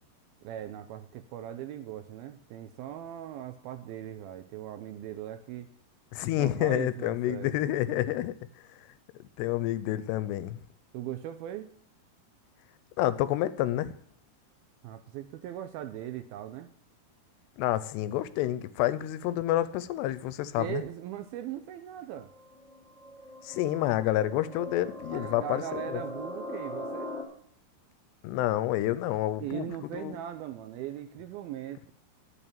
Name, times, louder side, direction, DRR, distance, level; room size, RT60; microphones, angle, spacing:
voice 1, 0.4-5.7 6.4-7.5 10.9-11.7 14.8-16.7 20.6-22.3 25.1-27.1 29.4-31.9, right 11 dB, 80° right, 2.3 m, -39 dB
voice 2, 6.1-8.3 9.4-10.6 13.0-13.9 17.6-20.8 23.4-26.0 28.2-29.7 29.9-30.2, left 14 dB, 85° left, 2.8 m, -29 dB
sound 1, 22.2-27.2, left 1 dB, ahead, 2.1 m, -40 dB
11.0 x 6.7 x 8.7 m
omnidirectional pair, 4.8 m